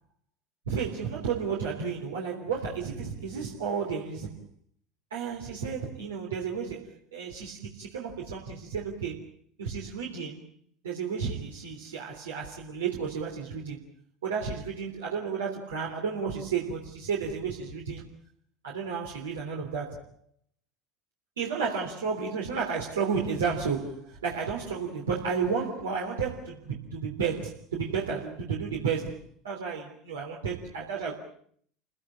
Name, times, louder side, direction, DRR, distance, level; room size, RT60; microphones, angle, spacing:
voice 1, 0.7-4.4 5.1-9.3 9.6-10.4 10.8-13.8 14.2-18.0 18.6-20.0 21.4-29.2 29.4-31.2, right 6 dB, 90° right, -1 dB, 3.3 m, -32 dB
28.0 x 16.5 x 8.5 m, 0.62 s
hypercardioid pair, 80°, 0 cm